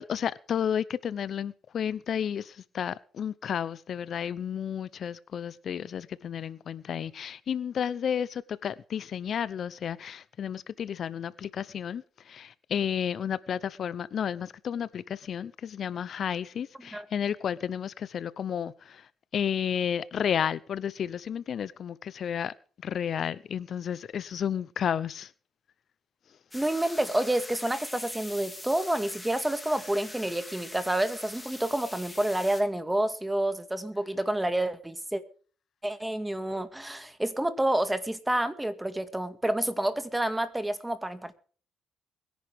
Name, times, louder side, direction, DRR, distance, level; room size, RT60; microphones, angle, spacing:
voice 1, 0.0-25.3, left 8 dB, 60° left, 0.7 m, -32 dB
sound 1, 26.5-32.6, left 1 dB, 10° left, 3.2 m, -43 dB
voice 2, 26.5-35.2 35.8-41.3, right 1 dB, 10° right, 2.0 m, -29 dB
22.5 x 10.5 x 3.6 m
cardioid pair, 90°, 0 cm